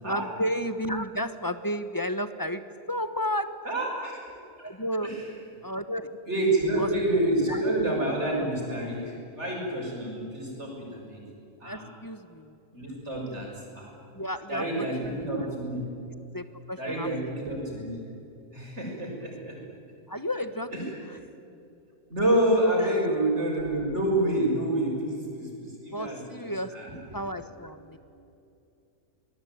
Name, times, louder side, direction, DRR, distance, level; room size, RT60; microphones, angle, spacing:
voice 1, 0.0-2.6 2.9-3.5 4.6-5.1 5.6-6.9 7.5-7.6 8.4-8.8 11.6-12.6 14.1-15.5 16.3-17.1 17.7-17.8 20.1-20.7 22.8-23.2 25.9-28.0, equal, 15° left, 11 dB, 0.9 m, -33 dB
voice 2, 3.6-4.2 4.6-4.7 5.0-5.2 6.3-11.2 11.6-11.8 12.7-13.5 13.7-13.9 14.5-15.8 16.8-18.0 18.5-19.6 20.7-20.8 22.1-27.0 27.5-27.6, right 1 dB, 45° right, -1 dB, 6.7 m, -28 dB
25.5 x 20.0 x 9.4 m, 2.7 s
omnidirectional pair, 1.6 m